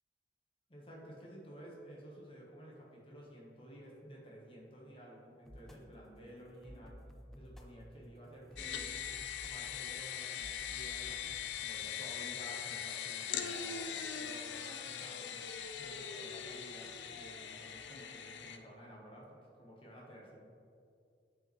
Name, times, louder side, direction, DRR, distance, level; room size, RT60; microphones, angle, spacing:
voice 1, 0.7-7.0 7.3-9.0 9.4-15.4 15.8-20.4, equal, 30° left, -3 dB, 1.1 m, -53 dB
sound 1, 5.4-11.2, equal, ahead, 0.3 m, -54 dB
sound 2, 8.6-18.6, left 8 dB, 80° left, 0.4 m, -41 dB
8.6 x 5.0 x 3.1 m, 2.4 s
head